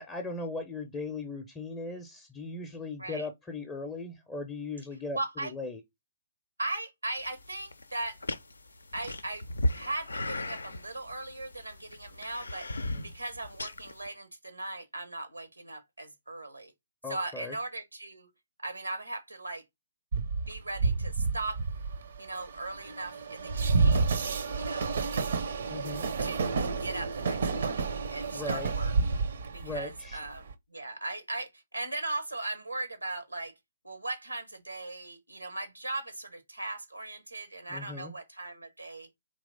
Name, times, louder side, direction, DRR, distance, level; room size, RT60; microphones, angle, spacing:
voice 1, 0.0-5.8 12.8-13.0 17.0-17.6 25.7-26.1 28.3-28.7 29.6-30.2 37.7-38.1, left 3 dB, 15° left, 0.6 m, -38 dB
voice 2, 5.1-5.5 6.6-8.2 8.9-9.5 9.7-12.7 13.0-16.7 17.1-18.3 18.6-19.6 20.5-21.6 22.2-24.1 24.5-25.0 26.2-28.9 29.5-33.5 33.8-39.1, right 2 dB, 85° right, 0.9 m, -38 dB
sound 1, 7.2-14.1, left 1 dB, 75° left, 0.5 m, -36 dB
Train, 20.1-30.5, right 4 dB, 55° right, 0.6 m, -30 dB
4.0 x 3.0 x 3.8 m
figure-of-eight pair, 125°, 0 cm